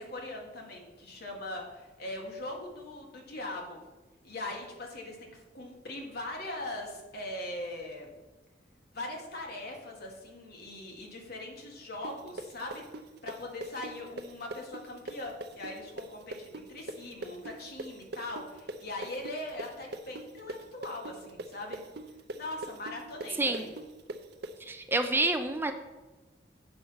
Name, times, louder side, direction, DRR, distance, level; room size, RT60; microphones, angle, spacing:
voice 1, 0.0-3.8 4.2-8.1 8.9-12.8 13.2-21.8 22.4-23.7, left 1 dB, 55° left, 0 dB, 1.8 m, -41 dB
sound 1, 12.0-19.7 19.9-24.5, right 2 dB, 60° right, 0.6 m, -40 dB
voice 2, 24.6-25.7, right 2 dB, 10° right, 7 dB, 0.4 m, -28 dB
7.7 x 5.5 x 5.7 m, 1.2 s
head